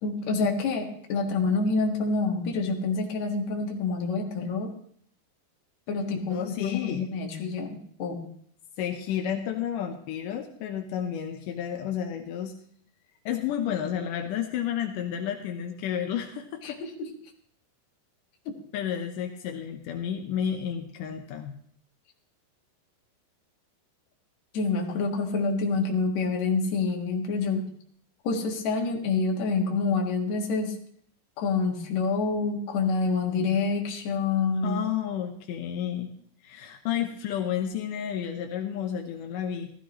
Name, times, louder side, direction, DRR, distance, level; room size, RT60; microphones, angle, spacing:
voice 1, 0.0-4.7 5.9-8.2 16.6-17.1 18.5-18.6 24.5-27.7 28.2-30.7 31.4-34.8, left 4 dB, 55° left, 2 dB, 2.3 m, -27 dB
voice 2, 6.3-7.1 8.8-12.5 13.3-16.8 18.7-21.5 34.6-36.1 36.4-39.7, left 9 dB, 80° left, 4 dB, 1.9 m, -31 dB
15.5 x 14.0 x 3.0 m, 0.62 s
omnidirectional pair, 4.8 m